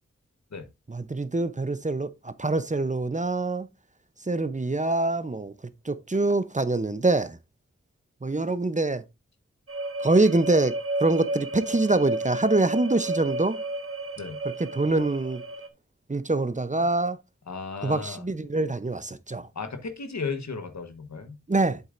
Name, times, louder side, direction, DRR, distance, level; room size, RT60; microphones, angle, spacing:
voice 1, 0.9-3.7 4.3-5.5 5.8-7.4 8.2-9.0 10.0-13.6 14.6-15.4 16.1-17.2 17.8-19.5 21.5-21.8, right 2 dB, 25° right, 0.7 m, -25 dB
sound 1, 9.7-15.7, right 1 dB, 50° right, 1.4 m, -32 dB
voice 2, 17.5-18.2 19.5-21.4, left 4 dB, 70° left, 1.2 m, -35 dB
8.0 x 7.3 x 2.6 m
cardioid pair, 45°, 29 cm